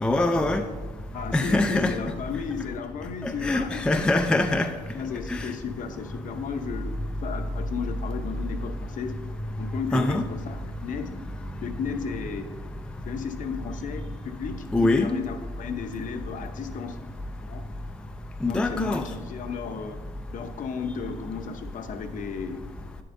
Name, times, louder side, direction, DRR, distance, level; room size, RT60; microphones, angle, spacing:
voice 1, 0.0-0.6 1.3-2.0 3.2-4.7 5.3-5.5 9.9-10.2 14.7-15.1 18.4-19.0, left 2 dB, 5° left, 6 dB, 0.3 m, -23 dB
voice 2, 1.1-4.1 4.9-9.2 9.6-11.2 11.6-12.5 13.0-17.0 17.4-17.6 18.5-20.0 20.3-22.6, left 6 dB, 50° left, 7 dB, 0.7 m, -34 dB
9.1 x 7.7 x 2.6 m, 1.3 s
cardioid pair, 110°, 17 cm